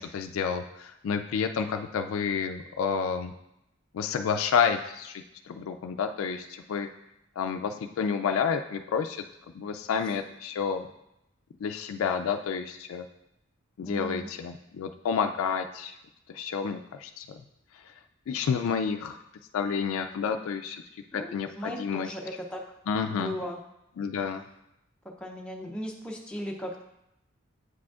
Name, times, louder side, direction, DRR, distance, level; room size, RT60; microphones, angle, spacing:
voice 1, 0.0-3.3 3.9-6.9 7.4-9.2 9.5-10.9 11.6-13.1 13.8-15.9 16.3-17.4 18.3-19.2 19.5-20.8 21.1-22.1 22.9-23.3 24.0-24.4, left 6 dB, 85° left, 6 dB, 0.3 m, -30 dB
voice 2, 13.9-14.3 21.1-22.6 23.1-23.6 25.2-26.8, equal, 5° left, -1 dB, 0.5 m, -37 dB
8.2 x 5.0 x 2.4 m, 0.85 s
head